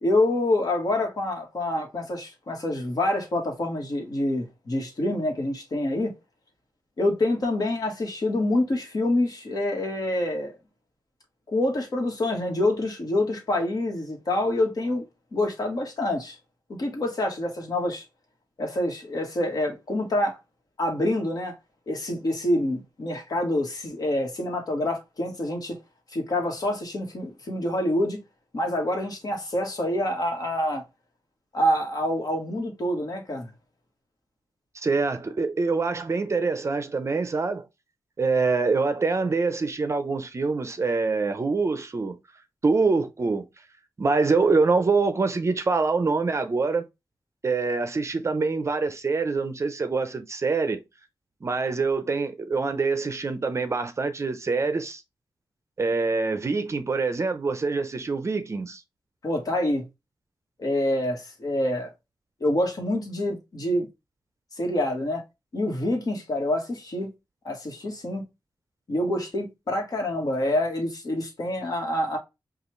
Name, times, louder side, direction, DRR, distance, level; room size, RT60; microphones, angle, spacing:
voice 1, 0.0-6.1 7.0-10.5 11.5-15.1 15.3-16.3 16.8-18.0 18.6-20.4 20.8-21.5 21.9-25.8 26.1-28.2 28.5-30.8 31.5-33.5 59.2-59.8 60.6-61.9 62.4-63.9 64.6-65.2 65.5-67.1 67.4-68.2 68.9-72.2, left 1 dB, 50° left, 1.5 m, -26 dB
voice 2, 34.7-37.6 38.2-42.2 42.6-43.5 44.0-46.8 47.4-50.8 51.4-55.0 55.8-58.8, right 4 dB, 35° right, 0.5 m, -25 dB
5.3 x 2.4 x 3.1 m
wide cardioid pair, 125°, 8 cm